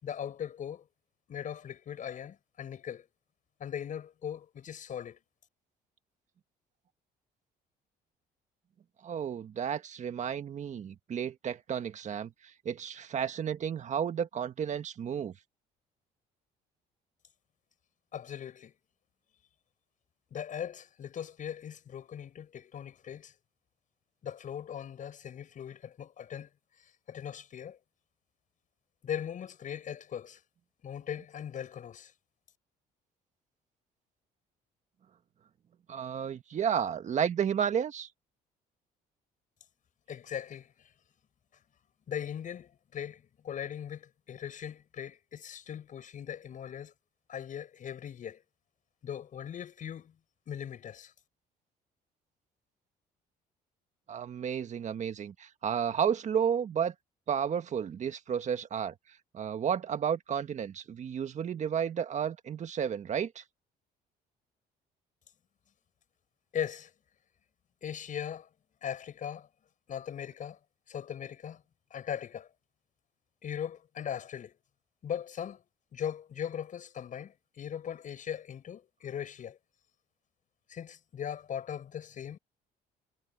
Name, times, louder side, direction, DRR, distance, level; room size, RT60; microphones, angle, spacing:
voice 1, 0.0-0.8 1.3-3.0 3.6-5.2 18.1-18.7 20.3-23.3 24.2-26.5 27.1-27.8 29.0-30.4 30.8-32.1 40.1-40.9 42.1-46.9 47.3-48.4 49.0-50.1 50.5-51.1 66.5-66.9 67.8-68.5 68.8-69.5 69.9-70.6 70.9-71.6 71.9-72.5 73.4-74.5 75.0-75.6 75.9-79.6 80.7-82.4, left 9 dB, 50° left, 6.3 m, -39 dB
voice 2, 9.0-12.3 12.6-15.3 35.9-38.1 54.1-56.9 57.3-58.9 59.3-63.4, right 8 dB, 45° right, 1.6 m, -32 dB
cardioid pair, 110°, 17 cm